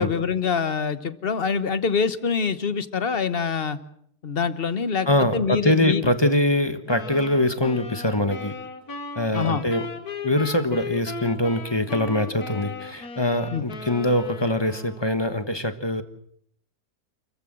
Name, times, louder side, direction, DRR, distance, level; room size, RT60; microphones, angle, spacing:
voice 1, 0.0-3.8 4.2-6.0 9.3-9.6 13.5-13.6, left 6 dB, 40° left, 13 dB, 1.2 m, -25 dB
voice 2, 5.1-8.5 9.2-9.9 10.2-16.0, left 1 dB, 20° left, 10 dB, 1.2 m, -23 dB
sound 1, 6.9-15.2, left 4 dB, 75° left, 2.3 m, -37 dB
28.5 x 15.0 x 7.6 m, 0.67 s
omnidirectional pair, 1.6 m